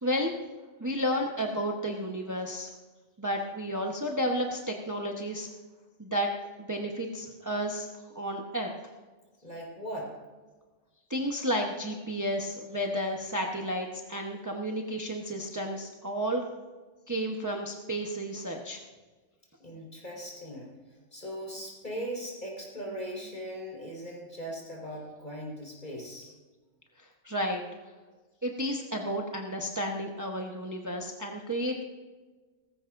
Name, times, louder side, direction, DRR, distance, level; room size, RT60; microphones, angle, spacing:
voice 1, 0.0-0.4 0.8-2.7 3.2-5.5 6.0-6.3 6.6-7.9 8.1-8.7 11.1-16.4 17.1-18.8 27.2-27.6 28.4-31.8, equal, 15° right, 0 dB, 1.0 m, -32 dB
voice 2, 9.4-10.1 19.6-20.7 21.1-26.3, equal, 40° left, -3 dB, 4.6 m, -39 dB
18.5 x 15.5 x 2.6 m, 1.3 s
omnidirectional pair, 1.2 m